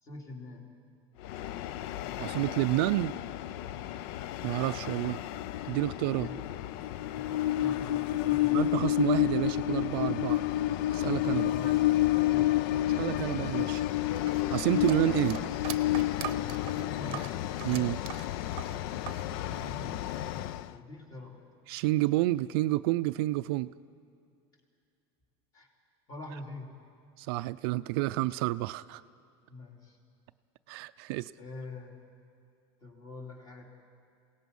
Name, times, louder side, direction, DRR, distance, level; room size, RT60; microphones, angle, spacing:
voice 1, 0.0-0.7 3.7-4.0 6.1-6.5 7.1-8.6 11.4-12.0 12.3-12.5 16.6-17.5 19.4-21.4 25.5-25.7 26.1-26.7 29.5-30.0 31.4-32.0 32.8-33.7, left 2 dB, 30° left, 0 dB, 3.3 m, -45 dB
Train, 1.2-20.7, left 14 dB, 60° left, 0.5 m, -30 dB
voice 2, 2.2-3.1 4.4-5.2 5.6-6.3 8.5-10.4 10.9-11.5 12.9-13.8 14.5-15.4 17.6-18.0 21.7-23.7 27.2-29.0 30.7-31.3, right 18 dB, 65° right, 14 dB, 0.4 m, -29 dB
sound 1, 14.2-19.3 19.5-20.4, right 13 dB, 40° right, 0.8 m, -42 dB
28.0 x 17.5 x 5.4 m, 2.4 s
supercardioid pair, 155°, 14 cm